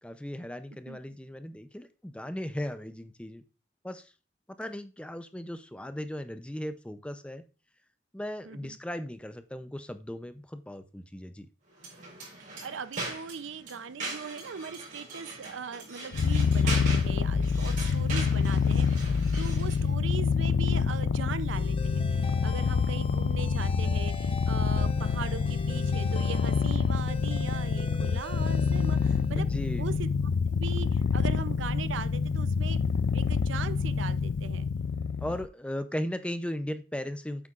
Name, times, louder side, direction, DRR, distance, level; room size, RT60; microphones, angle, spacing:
voice 1, 0.0-3.4 3.8-4.1 4.6-7.4 8.1-11.5 29.4-29.9 35.2-37.5, left 1 dB, 5° left, 0.5 m, -37 dB
voice 2, 8.5-8.8 12.6-29.5 29.8-30.1 30.5-32.8 33.1-34.7, right 5 dB, 85° right, 0.6 m, -39 dB
sound 1, 11.8-19.9, right 3 dB, 45° right, 4.1 m, -40 dB
Purr, 16.1-35.5, left 5 dB, 75° left, 0.4 m, -27 dB
sound 2, 21.5-29.7, left 2 dB, 30° left, 0.9 m, -44 dB
8.4 x 8.3 x 2.5 m
head